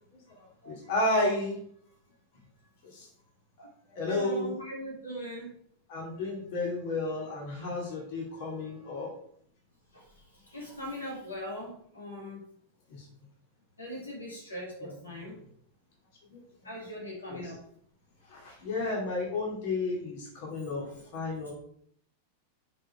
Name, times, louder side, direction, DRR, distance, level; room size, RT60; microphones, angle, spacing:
voice 1, 0.4-1.6 2.8-3.1 3.9-4.5 5.9-9.1 12.9-13.1 14.8-14.9 16.3-16.4 17.3-17.4 18.2-20.8 21.1-21.5, left 2 dB, 50° left, -2 dB, 2.5 m, -32 dB
voice 2, 4.1-5.5 9.9-10.0 10.3-12.4 13.8-15.4 16.6-17.6 20.7-20.9 21.5-21.6, equal, 80° left, -3 dB, 2.8 m, -40 dB
7.6 x 4.9 x 4.7 m, 0.65 s
figure-of-eight pair, 90°, 0 cm